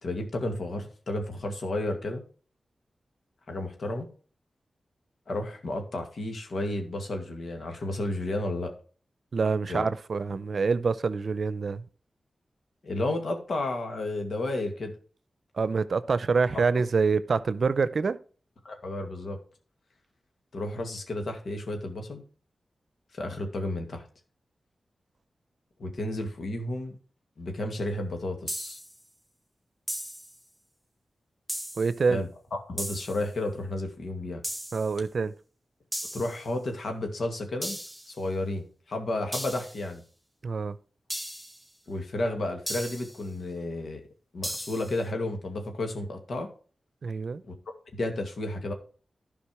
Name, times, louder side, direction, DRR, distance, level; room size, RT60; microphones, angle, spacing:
voice 1, 0.0-2.2 3.5-4.1 5.3-8.7 9.7-9.9 12.8-14.9 16.5-16.8 18.6-19.4 20.5-22.2 23.1-24.0 25.8-27.0 27.4-28.8 32.1-34.4 36.1-37.8 38.1-40.0 41.9-44.0 44.3-46.5 47.4-47.5 47.9-48.7, left 2 dB, 75° left, 2.2 m, -32 dB
voice 2, 9.3-11.8 15.6-18.2 31.8-32.2 34.7-35.3 40.4-40.8 47.0-47.4, right 4 dB, 70° right, 0.6 m, -26 dB
sound 1, 28.5-29.0 29.9-30.4 31.5-32.0 32.8-33.3 34.4-35.0 35.9-36.5 37.6-38.1 39.3-39.9 41.1-41.6 42.7-43.2 44.4-45.0, equal, ahead, 0.7 m, -36 dB
12.0 x 5.1 x 4.9 m
cardioid pair, 55°, 0 cm